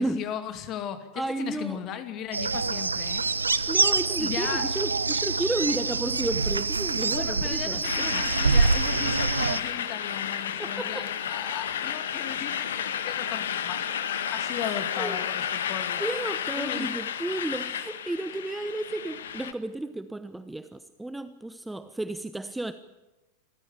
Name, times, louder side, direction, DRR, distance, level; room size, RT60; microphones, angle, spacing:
voice 1, 0.0-3.2 4.2-4.7 7.1-13.9 14.3-16.0 16.6-16.9, left 10 dB, 35° left, 9 dB, 2.5 m, -36 dB
voice 2, 1.1-1.8 3.7-8.3 10.6-11.1 14.6-15.2 16.0-22.7, right 2 dB, 5° right, 11 dB, 1.0 m, -32 dB
sound 1, 2.3-9.6, right 4 dB, 75° right, 0.8 m, -26 dB
sound 2, 7.8-19.5, left 9 dB, 60° left, 1.5 m, -32 dB
26.0 x 14.5 x 8.5 m, 1.0 s
figure-of-eight pair, 90°, 0 cm